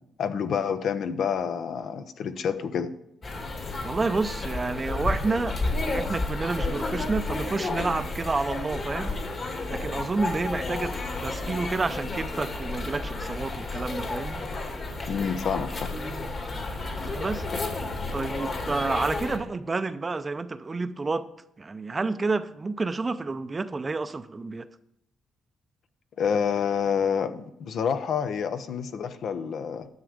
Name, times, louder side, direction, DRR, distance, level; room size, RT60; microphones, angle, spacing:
voice 1, 0.2-2.9 15.1-15.9 26.2-29.9, left 7 dB, 65° left, 0.8 m, -28 dB
sound 1, 3.2-19.4, left 2 dB, 40° left, 1.9 m, -31 dB
voice 2, 3.8-5.6 5.8-9.1 9.7-11.0 11.2-14.4 17.0-17.4 18.1-21.3 21.6-24.7, right 3 dB, 30° right, 0.6 m, -29 dB
11.0 x 7.2 x 5.1 m
cardioid pair, 90°, 0 cm